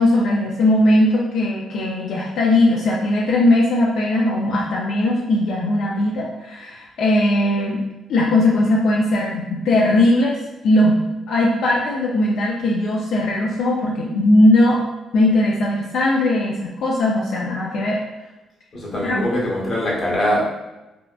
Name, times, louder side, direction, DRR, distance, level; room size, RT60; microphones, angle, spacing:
voice 1, 0.0-7.8 8.1-11.0 11.3-14.8 15.1-18.0 19.0-19.1, left 1 dB, 75° left, -3 dB, 0.3 m, -18 dB
voice 2, 18.7-20.4, equal, 40° left, -4 dB, 0.8 m, -22 dB
2.7 x 2.1 x 2.3 m, 1.0 s
cardioid pair, 90°, 0 cm